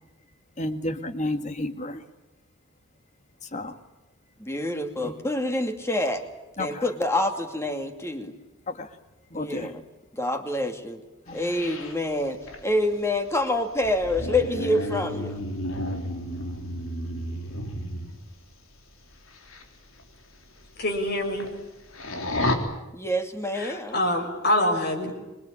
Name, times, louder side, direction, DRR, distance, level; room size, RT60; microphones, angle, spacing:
voice 1, 0.6-2.0 3.4-3.8 5.0-5.2 6.6-6.9 8.7-9.0 9.3-9.7 11.3-11.5, left 1 dB, 35° left, 9 dB, 1.9 m, -32 dB
voice 2, 4.4-6.2 6.6-8.4 9.3-9.8 10.1-11.0 11.3-15.4 22.9-24.0, left 1 dB, 15° left, 6 dB, 2.5 m, -27 dB
sound 1, 11.3-18.2 19.3-19.6 20.0-20.1 20.6-20.7 20.9-21.6 21.9-22.5, left 1 dB, 90° left, 3.8 m, -32 dB
voice 3, 20.8-21.5 23.6-25.1, left 1 dB, 50° left, 5 dB, 5.7 m, -25 dB
26.5 x 22.5 x 8.8 m, 1.0 s
head